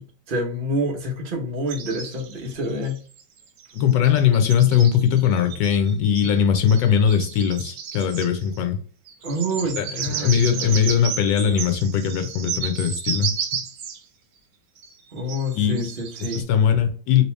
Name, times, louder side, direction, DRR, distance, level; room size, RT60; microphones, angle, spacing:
voice 1, 0.0-3.0 9.2-10.9 15.1-16.5, equal, 45° right, 0.6 m, -28 dB
sound 1, 1.7-3.2 3.6-8.6 9.1-14.0 14.8-16.4, right 7 dB, 70° right, 1.2 m, -33 dB
voice 2, 3.7-8.8 9.8-13.6 15.5-15.8 16.3-17.2, left 8 dB, 75° left, 1.3 m, -20 dB
3.0 x 2.9 x 3.2 m
omnidirectional pair, 2.0 m